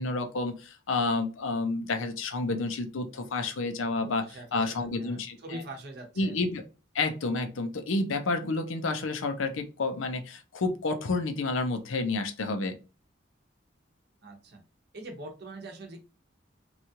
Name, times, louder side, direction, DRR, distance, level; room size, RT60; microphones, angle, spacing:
voice 1, 0.0-4.3 4.5-5.6 6.2-6.6 6.9-12.7, left 3 dB, 80° left, 6 dB, 0.6 m, -30 dB
voice 2, 4.0-6.4 14.2-14.6 14.9-16.0, right 1 dB, 55° right, 3 dB, 0.8 m, -43 dB
2.9 x 2.3 x 2.7 m, 0.32 s
head